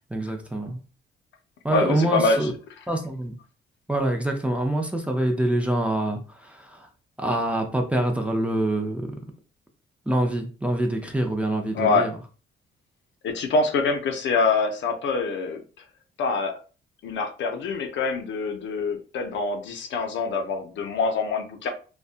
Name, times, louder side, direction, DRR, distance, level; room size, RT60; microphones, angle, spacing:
voice 1, 0.1-0.8 1.6-2.5 2.9-3.3 3.9-6.9 7.2-9.2 10.1-12.1, right 1 dB, 5° right, 2 dB, 0.5 m, -25 dB
voice 2, 1.7-2.5 11.7-12.1 13.2-15.6 16.2-16.5 17.0-21.7, left 4 dB, 70° left, 5 dB, 0.6 m, -25 dB
2.5 x 2.2 x 2.4 m, 0.36 s
cardioid pair, 90°, 20 cm